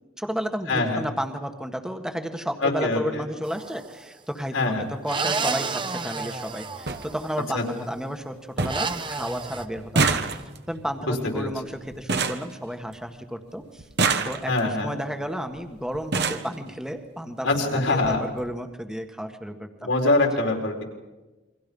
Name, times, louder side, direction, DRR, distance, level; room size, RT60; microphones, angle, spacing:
voice 1, 0.2-10.4 10.7-13.8 14.2-19.9, equal, 5° right, 6 dB, 1.6 m, -32 dB
voice 2, 0.7-1.0 2.6-3.2 4.5-4.9 7.5-7.6 11.3-11.5 14.5-14.9 17.4-18.2 19.8-20.8, left 2 dB, 75° left, 2 dB, 4.4 m, -23 dB
sound 1, 3.4-4.0 5.0-7.5 8.7-9.7, right 4 dB, 25° right, 1.1 m, -30 dB
sound 2, 4.7-4.9 6.2-6.3 6.5-6.6 6.9-7.0 7.5-8.0 8.2-8.3 8.6-9.0 9.2-13.2 13.8-14.8 15.6-15.7 15.9-16.5 17.5-17.6 17.9-18.1 18.4-18.5, right 4 dB, 55° right, 1.5 m, -27 dB
29.0 x 24.0 x 5.5 m, 1.1 s
head